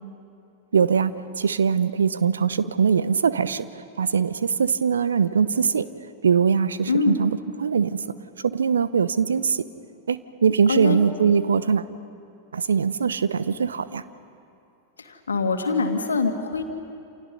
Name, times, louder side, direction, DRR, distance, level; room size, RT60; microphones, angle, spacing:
voice 1, 0.7-5.9 6.2-8.0 8.4-9.6 10.1-11.8 12.5-14.0, right 6 dB, 70° right, 14 dB, 0.8 m, -22 dB
voice 2, 6.9-7.2 10.7-11.0 15.0-16.6, left 4 dB, 75° left, 5 dB, 2.1 m, -24 dB
28.5 x 28.0 x 5.5 m, 2.6 s
figure-of-eight pair, 90°, 0 cm